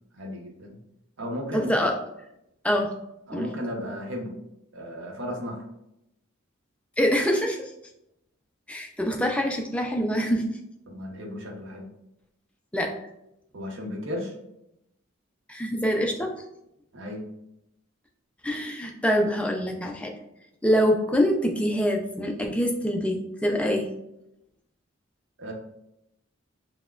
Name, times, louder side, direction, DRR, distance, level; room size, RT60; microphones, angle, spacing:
voice 1, 0.1-0.8 1.2-1.9 3.3-4.3 4.7-5.6 10.9-11.8 13.5-14.3 16.9-17.2 25.4-25.5, equal, 65° right, 0 dB, 0.7 m, -34 dB
voice 2, 1.5-2.0 2.6-2.9 3.3-3.5 7.0-7.7 8.7-10.5 12.7-12.9 15.5-16.3 18.4-20.1 20.6-23.9, equal, 5° left, 2 dB, 0.3 m, -25 dB
5.7 x 2.1 x 2.3 m, 0.83 s
head